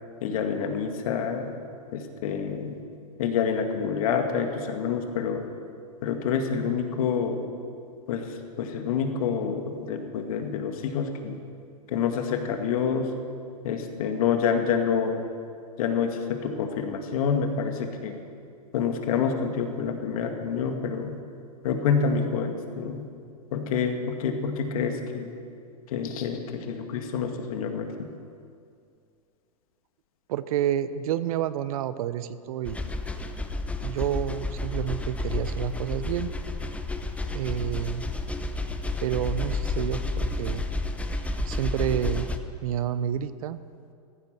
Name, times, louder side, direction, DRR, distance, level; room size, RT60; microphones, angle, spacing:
voice 1, 0.2-1.5 1.9-2.8 3.2-5.4 6.0-7.4 8.1-11.4 11.9-13.1 13.6-15.2 15.8-18.2 18.7-21.2 21.6-23.1 23.5-25.4 25.9-28.1, left 6 dB, 65° left, 5 dB, 2.1 m, -27 dB
voice 2, 30.3-32.8 33.8-36.3 37.3-38.1 39.0-40.7 41.5-42.3 42.6-43.6, right 10 dB, 65° right, 14 dB, 0.8 m, -29 dB
sound 1, 32.7-42.4, left 2 dB, 5° left, 0.8 m, -31 dB
15.0 x 14.5 x 6.2 m, 2.3 s
hypercardioid pair, 130°, 20 cm